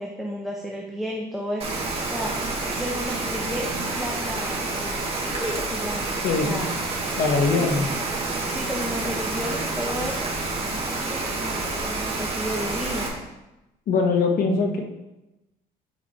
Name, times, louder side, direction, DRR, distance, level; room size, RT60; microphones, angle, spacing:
voice 1, 0.0-1.7 2.0-2.3 2.8-6.1 6.4-6.8 7.6-7.7 8.5-10.3 10.6-13.1, equal, ahead, -2 dB, 1.0 m, -33 dB
Rain, 1.6-13.1, right 2 dB, 35° right, 2.2 m, -28 dB
voice 2, 6.2-6.7 7.2-7.9 13.9-14.8, left 4 dB, 60° left, 2 dB, 1.4 m, -22 dB
8.6 x 5.3 x 4.2 m, 0.98 s
cardioid pair, 110°, 17 cm